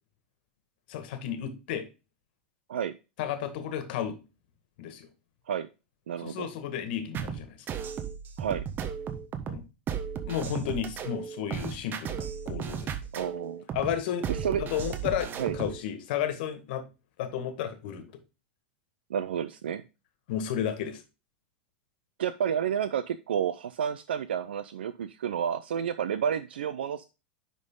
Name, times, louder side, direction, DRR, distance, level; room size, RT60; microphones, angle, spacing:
voice 1, 0.9-1.9 3.2-4.2 4.8-5.1 6.2-7.6 9.5-9.6 10.3-12.9 13.7-14.3 14.6-16.8 17.2-18.1 20.3-21.0, left 9 dB, 70° left, 8 dB, 1.7 m, -32 dB
voice 2, 6.1-6.5 8.4-8.6 13.1-13.6 14.3-14.6 15.4-15.6 19.1-19.8 22.2-27.0, right 8 dB, 90° right, 11 dB, 0.5 m, -30 dB
sound 1, 7.1-15.8, right 8 dB, 35° right, 1.3 m, -35 dB
10.5 x 3.8 x 3.8 m, 0.29 s
hypercardioid pair, 110°, 6 cm